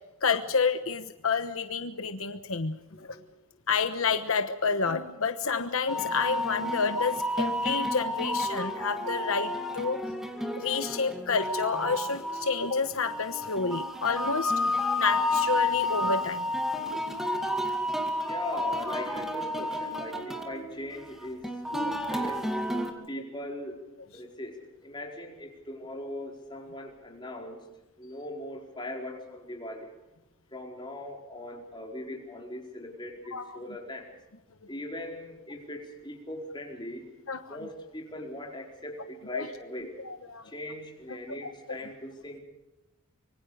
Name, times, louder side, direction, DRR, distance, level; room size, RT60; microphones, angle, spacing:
voice 1, 0.2-3.2 3.7-10.0 10.6-14.5 15.0-16.5 16.9-17.0 21.7-21.9 22.9-23.1 33.3-33.5 37.3-37.6 39.3-39.5 40.0-40.5 41.4-41.8, left 5 dB, 70° left, 9 dB, 1.1 m, -29 dB
voice 2, 2.9-3.3 18.3-21.5 21.8-22.5 23.1-23.8 24.1-24.6 24.8-27.6 28.0-29.9 30.5-34.1 34.7-37.0 37.5-39.9 40.4-42.4, left 1 dB, 20° left, 0 dB, 4.7 m, -40 dB
sound 1, 5.9-22.9, left 1 dB, ahead, 2.2 m, -31 dB
25.5 x 23.5 x 5.0 m, 0.96 s
head